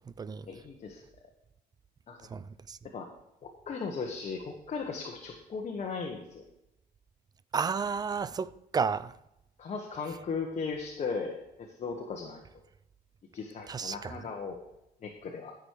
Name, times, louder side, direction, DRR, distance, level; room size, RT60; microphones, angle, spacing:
voice 1, 0.5-1.0 2.1-2.2 2.9-3.1 3.4-6.4 9.6-12.4 13.3-14.6 15.0-15.5, left 5 dB, 40° left, 1.4 m, -37 dB
voice 2, 2.3-2.8 7.5-9.1 13.7-14.2, right 5 dB, 25° right, 0.4 m, -32 dB
13.0 x 6.3 x 4.8 m
cardioid pair, 110°, 17 cm